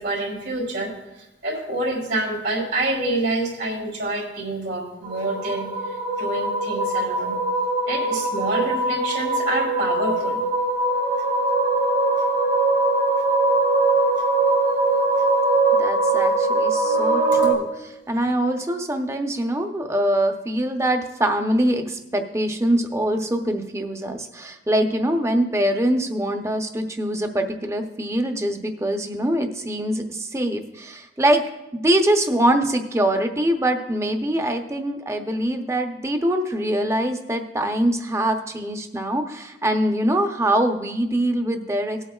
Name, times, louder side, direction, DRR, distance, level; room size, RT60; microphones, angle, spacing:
voice 1, 0.0-7.4 7.9-10.4, right 2 dB, 80° right, -2 dB, 3.1 m, -27 dB
sound 1, 5.0-17.5, right 2 dB, 50° right, 1.5 m, -21 dB
voice 2, 15.7-31.4 31.7-42.0, right 1 dB, 15° right, 5 dB, 0.7 m, -23 dB
18.5 x 8.1 x 2.4 m, 0.97 s
head